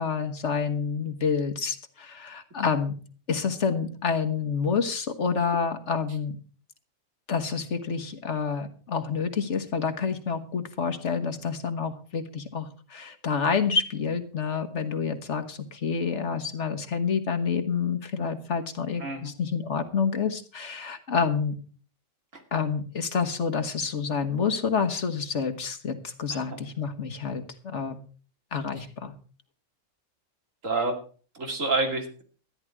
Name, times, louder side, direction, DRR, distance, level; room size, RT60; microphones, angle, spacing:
voice 1, 0.0-3.0 3.3-6.4 7.3-21.6 22.5-28.0 28.5-29.1, left 6 dB, 65° left, 8 dB, 1.8 m, -28 dB
voice 2, 19.0-19.3 22.3-22.4 26.5-26.6 30.6-31.0 31.3-32.2, right 3 dB, 85° right, 4 dB, 3.1 m, -28 dB
13.5 x 10.5 x 4.8 m, 0.40 s
omnidirectional pair, 1.3 m